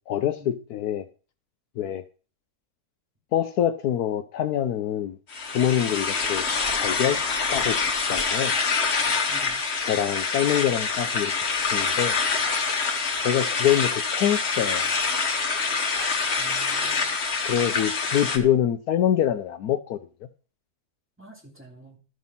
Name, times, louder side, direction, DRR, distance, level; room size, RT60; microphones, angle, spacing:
voice 1, 0.1-1.1 1.8-2.0 3.3-5.2 5.5-6.4 6.7-7.2 7.5-8.5 9.8-12.1 13.2-14.9 17.4-20.0, left 10 dB, 70° left, 11 dB, 1.1 m, -25 dB
sound 1, 5.3-18.4, left 4 dB, 45° left, 1.5 m, -26 dB
voice 2, 9.3-9.6 16.4-17.1 21.2-22.0, right 2 dB, 5° right, -1 dB, 2.8 m, -47 dB
12.0 x 6.2 x 5.6 m, 0.36 s
omnidirectional pair, 1.7 m